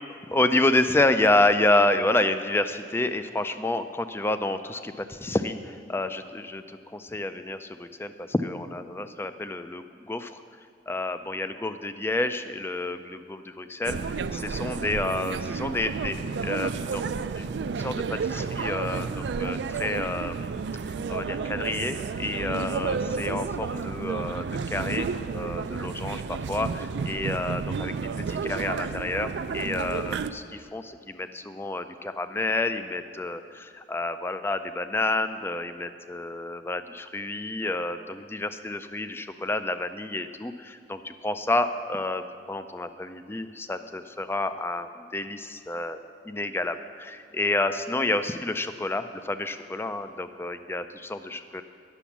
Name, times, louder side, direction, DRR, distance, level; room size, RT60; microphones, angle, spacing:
voice 1, 0.1-10.4 10.9-20.6 20.8-46.0 46.3-51.6, left 2 dB, 15° left, 10 dB, 0.3 m, -29 dB
sound 1, 13.8-30.3, right 5 dB, 70° right, 0.4 m, -31 dB
10.0 x 7.0 x 7.2 m, 2.4 s
head